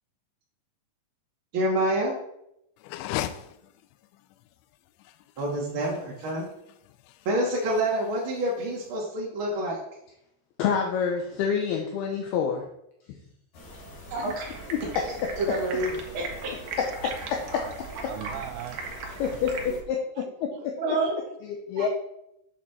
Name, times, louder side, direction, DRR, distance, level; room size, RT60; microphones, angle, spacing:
voice 1, 1.5-2.2 5.4-6.4 7.2-9.8 14.1-14.5 15.4-15.9 16.1-16.5 20.8-21.1, right 1 dB, 45° right, -3 dB, 1.7 m, -27 dB
sound 1, 2.8-8.9, left 13 dB, 90° left, 3.0 m, -39 dB
voice 2, 10.6-12.6 13.1-13.2 14.7-14.8 15.2-15.3 17.5-17.6 19.2-20.7 21.4-21.9, left 7 dB, 75° left, 1 dB, 2.6 m, -27 dB
sound 2, 13.5-19.8, right 1 dB, 55° left, 3.9 m, -44 dB
Stream, 14.1-19.6, right 4 dB, 60° right, 2.7 m, -39 dB
voice 3, 17.7-19.2 19.6-19.8 20.2-20.3 20.5-20.6 21.8-21.9, right 11 dB, 85° right, 10 dB, 2.8 m, -40 dB
9.0 x 8.0 x 4.3 m, 0.79 s
omnidirectional pair, 5.3 m